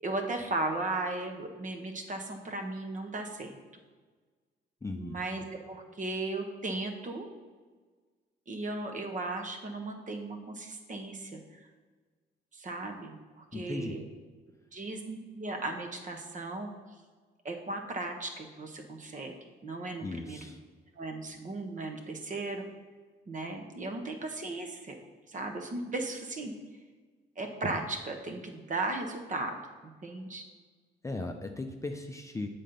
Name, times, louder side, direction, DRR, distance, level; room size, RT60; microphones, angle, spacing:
voice 1, 0.0-3.6 5.0-7.3 8.5-11.4 12.5-14.0 14.7-16.7 17.4-19.3 19.6-20.4 20.9-22.6 23.3-24.9 25.3-26.5 27.4-29.6 30.0-30.4, right 2 dB, 40° right, 4 dB, 1.1 m, -36 dB
voice 2, 4.8-5.2 13.5-14.0 20.0-20.6 31.0-32.5, left 2 dB, 15° left, 4 dB, 0.5 m, -37 dB
7.4 x 4.2 x 5.2 m, 1.4 s
cardioid pair, 90°, 20 cm